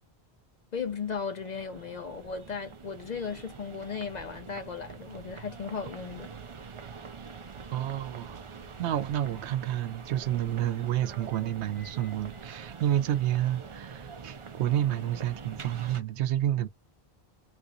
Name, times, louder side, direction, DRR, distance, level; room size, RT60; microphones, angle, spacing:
voice 1, 0.7-6.3, left 6 dB, 55° left, 0.5 m, -36 dB
sound 1, 0.7-16.0, right 5 dB, 40° right, 0.5 m, -45 dB
voice 2, 7.7-8.4 8.8-16.7, right 12 dB, 80° right, 0.9 m, -29 dB
3.4 x 2.8 x 2.5 m
omnidirectional pair, 1.1 m